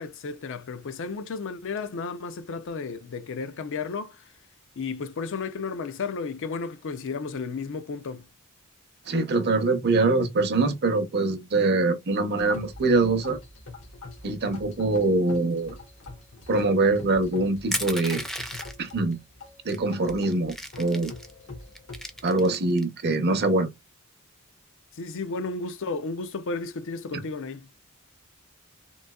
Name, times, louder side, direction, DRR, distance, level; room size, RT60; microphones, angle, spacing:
voice 1, 0.0-4.3 4.8-8.3 24.9-27.7, left 4 dB, 60° left, 0.5 m, -33 dB
voice 2, 9.1-13.4 14.2-15.8 16.5-18.3 18.8-19.2 19.6-21.1 22.2-23.7, right 3 dB, 50° right, 0.7 m, -23 dB
sound 1, 12.3-22.4, left 3 dB, 80° left, 1.4 m, -44 dB
Crushing, 17.7-18.9 19.7-19.8 20.1-21.3 21.7-22.8, equal, ahead, 0.5 m, -33 dB
3.8 x 2.6 x 2.3 m
head